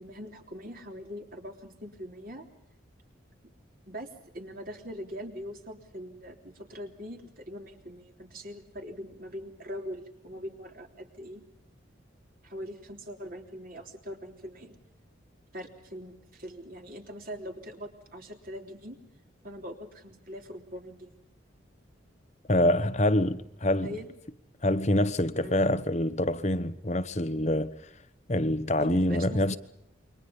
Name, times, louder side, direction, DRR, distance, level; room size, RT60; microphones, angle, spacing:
voice 1, 0.0-2.5 3.9-11.4 12.4-14.8 15.5-19.0 19.4-21.1 23.8-24.1 25.4-25.6 28.8-29.4, equal, 45° right, 3.5 m, -42 dB
voice 2, 22.5-24.0 24.6-27.7 28.3-29.6, left 1 dB, 35° left, 1.1 m, -26 dB
29.0 x 24.0 x 5.4 m
head